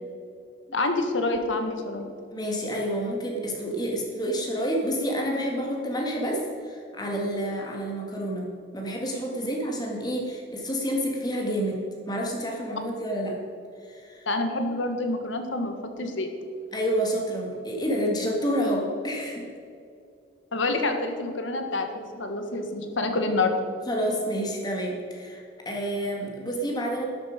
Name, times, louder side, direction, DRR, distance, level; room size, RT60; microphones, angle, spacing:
voice 1, 0.7-2.1 14.2-16.3 20.5-23.5, left 2 dB, 75° left, 6 dB, 1.6 m, -27 dB
voice 2, 2.3-13.4 13.8-14.3 16.7-19.5 23.9-27.1, equal, 20° left, 0 dB, 1.9 m, -29 dB
12.5 x 11.0 x 5.2 m, 2.5 s
head